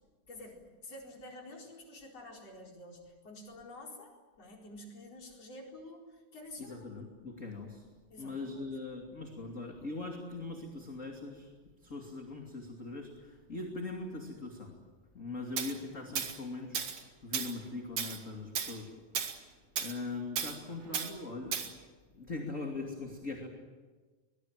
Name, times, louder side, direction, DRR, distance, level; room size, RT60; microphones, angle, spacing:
voice 1, 0.3-6.9 8.1-8.7, left 1 dB, 55° left, 0 dB, 5.5 m, -49 dB
voice 2, 6.6-7.9 8.2-11.5 11.8-14.8 15.1-16.8 17.2-19.1 19.8-21.9 22.1-23.5, left 3 dB, 25° left, 1 dB, 2.8 m, -41 dB
Tools, 15.6-15.7 16.2-16.4 16.7-17.0 17.3-17.5 18.0-18.2 18.5-18.8 19.1-19.4 19.8-19.9 20.4-20.6 20.9-21.1 21.5-21.7, right 8 dB, 85° right, 3.5 m, -34 dB
23.5 x 21.5 x 9.0 m, 1.3 s
omnidirectional pair, 3.5 m